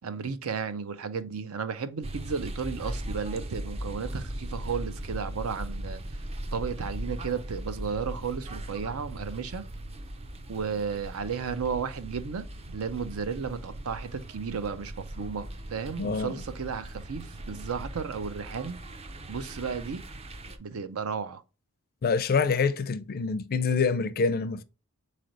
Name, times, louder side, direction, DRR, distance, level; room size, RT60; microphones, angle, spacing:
voice 1, 0.0-6.0 6.5-9.6 10.5-18.8 19.3-20.0 20.6-21.4, right 6 dB, 75° right, 0.6 m, -34 dB
sound 1, 2.0-20.6, right 1 dB, 30° right, 0.5 m, -39 dB
voice 2, 16.0-16.3 22.0-24.6, left 5 dB, 45° left, 0.4 m, -26 dB
3.9 x 3.3 x 3.9 m
head